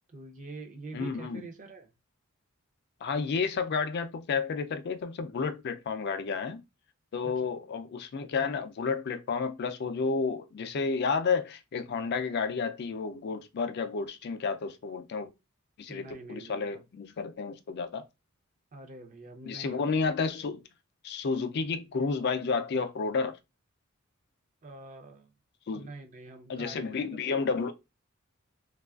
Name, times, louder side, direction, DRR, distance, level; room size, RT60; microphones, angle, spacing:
voice 1, 0.1-1.9 7.2-7.5 15.9-16.8 18.7-20.1 24.6-25.3 25.7-27.4, right 2 dB, 35° right, 0.6 m, -46 dB
voice 2, 0.9-1.4 3.0-6.6 7.1-15.3 15.8-18.0 19.5-20.6 21.0-23.4 25.7-25.9 26.5-27.7, left 5 dB, 50° left, 0.4 m, -31 dB
3.0 x 2.3 x 2.3 m
head